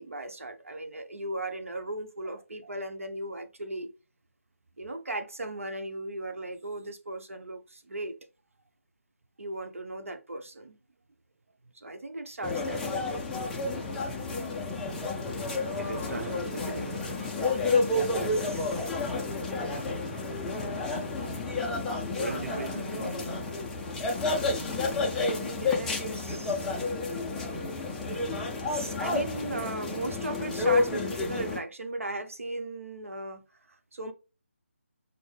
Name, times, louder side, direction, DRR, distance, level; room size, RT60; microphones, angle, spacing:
voice 1, 0.0-3.9 4.8-8.2 9.4-10.8 11.7-13.0 17.9-18.9 25.2-26.7 28.7-34.1, right 2 dB, 75° right, 1.0 m, -37 dB
sound 1, 12.4-31.6, left 3 dB, 5° left, 0.3 m, -30 dB
voice 2, 15.8-17.4 22.1-23.6, right 3 dB, 90° right, 0.5 m, -39 dB
6.0 x 2.1 x 3.3 m
figure-of-eight pair, 160°, 7 cm